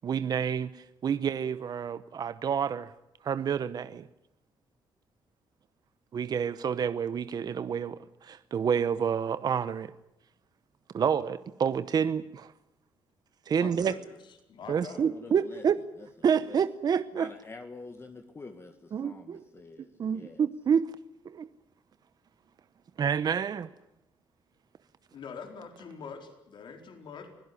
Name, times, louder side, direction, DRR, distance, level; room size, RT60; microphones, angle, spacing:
voice 1, 0.0-2.9 3.2-4.1 6.1-9.9 10.9-12.5 13.5-13.9 14.7-15.8 16.2-17.3 18.9-19.4 20.0-20.9 21.2-21.5 23.0-23.7, right 7 dB, 50° right, 13 dB, 0.9 m, -28 dB
voice 2, 13.5-14.0 14.5-15.1 25.1-27.3, left 6 dB, 60° left, 5 dB, 4.5 m, -44 dB
voice 3, 15.1-15.6 16.0-16.1 16.4-16.6 17.1-20.4, left 3 dB, 30° left, 6 dB, 1.9 m, -47 dB
25.0 x 16.5 x 9.8 m, 0.89 s
cardioid pair, 110°, 9 cm